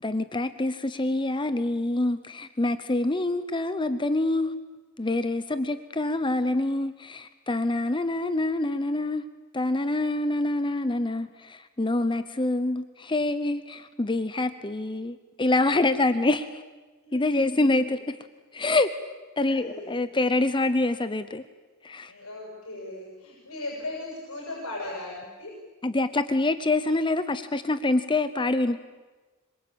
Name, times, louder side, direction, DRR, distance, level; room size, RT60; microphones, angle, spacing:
voice 1, 0.0-4.5 5.0-9.2 9.5-16.6 17.1-18.2 18.5-18.9 19.4-21.4 21.8-22.1 25.8-28.8, left 2 dB, 20° left, 12 dB, 0.8 m, -26 dB
voice 2, 17.0-18.0 19.5-19.9 22.1-25.5, left 2 dB, 75° left, -2 dB, 7.0 m, -38 dB
26.5 x 23.5 x 8.7 m, 1.3 s
head